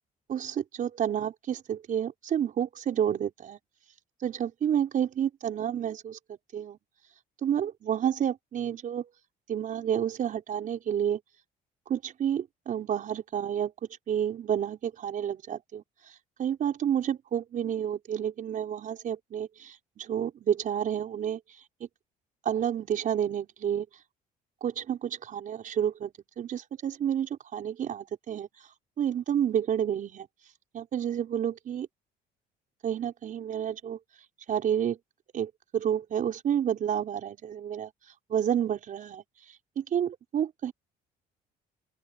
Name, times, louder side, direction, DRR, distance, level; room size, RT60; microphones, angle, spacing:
voice 1, 0.3-3.6 4.2-6.2 6.5-6.8 7.4-9.0 9.5-11.2 11.9-13.7 14.1-15.8 16.4-21.4 22.4-23.8 24.6-28.5 29.0-30.3 30.7-31.9 32.8-34.0 34.5-35.0 35.3-37.9 38.3-39.2 39.8-40.7, right 9 dB, 50° right, 5.1 m, -30 dB
open air
cardioid pair, 110°, 17 cm